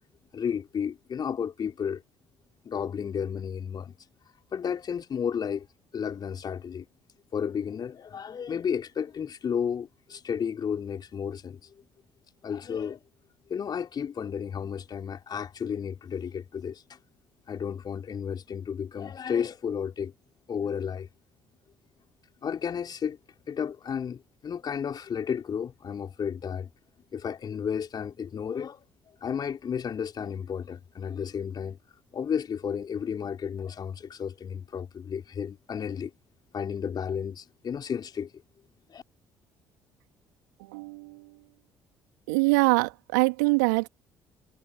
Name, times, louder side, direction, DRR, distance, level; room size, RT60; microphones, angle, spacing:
voice 1, 0.3-2.0 2.6-3.9 4.5-5.7 5.9-6.8 7.3-11.7 12.4-13.0 13.5-17.0 17.5-20.1 20.5-21.1 22.4-23.2 23.5-26.7 27.1-28.9 29.2-31.8 32.1-36.1 36.5-38.3 38.9-39.0, left 7 dB, 45° left, 4.1 m, -32 dB
voice 2, 40.6-41.3 42.3-43.9, right 27 dB, 75° right, 2.9 m, -24 dB
figure-of-eight pair, 50°, 10 cm